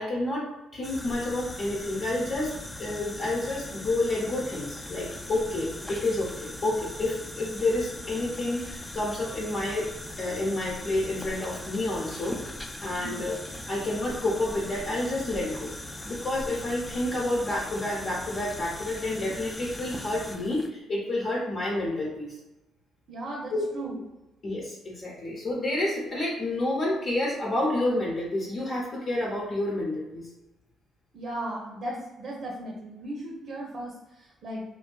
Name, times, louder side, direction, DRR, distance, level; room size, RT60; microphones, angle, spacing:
voice 1, 0.0-9.9 10.2-12.4 12.8-13.4 13.7-15.7 16.0-22.4 23.5-23.6 24.4-30.3, left 2 dB, 50° left, -4 dB, 0.7 m, -29 dB
sound 1, 0.8-20.7, left 1 dB, 15° left, 0.3 m, -40 dB
voice 2, 12.9-13.3 23.1-24.0 31.1-34.6, right 1 dB, 60° right, -2 dB, 0.6 m, -36 dB
2.5 x 2.1 x 2.3 m, 1.0 s
hypercardioid pair, 50°, 0 cm